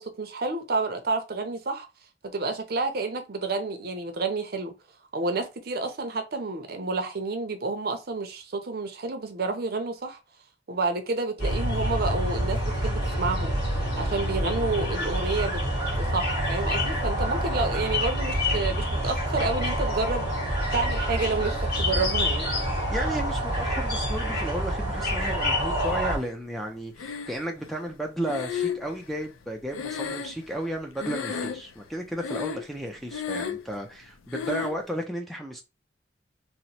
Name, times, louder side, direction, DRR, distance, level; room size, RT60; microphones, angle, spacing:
voice 1, 0.0-1.9 2.3-4.7 5.1-10.2 10.7-13.5 14.0-20.3 20.7-22.5, right 3 dB, 50° right, 0.5 m, -29 dB
sound 1, 11.4-26.2, equal, 50° left, 1.4 m, -27 dB
voice 2, 22.9-35.6, right 1 dB, ahead, 0.3 m, -33 dB
Breathing, 27.0-27.7 28.3-30.7 31.0-31.8 32.2-32.8 33.1-33.7 34.3-34.8, left 7 dB, 90° left, 0.4 m, -33 dB
2.9 x 2.0 x 4.0 m
head